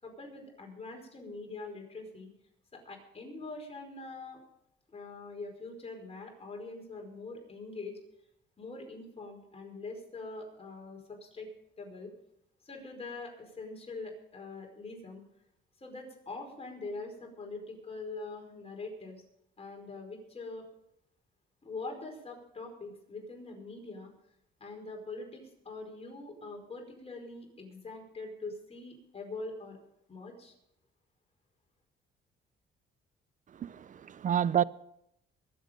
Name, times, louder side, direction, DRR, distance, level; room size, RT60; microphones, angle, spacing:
voice 1, 0.0-2.3 2.7-4.4 4.9-8.0 8.6-11.5 11.8-12.1 12.6-15.2 15.8-19.2 19.6-20.6 21.6-24.1 24.6-29.8 30.1-30.5, left 3 dB, 30° left, 5.1 m, -43 dB
voice 2, 33.5-34.6, right 9 dB, 40° right, 0.5 m, -29 dB
23.5 x 8.1 x 5.2 m
cardioid pair, 90°, 20 cm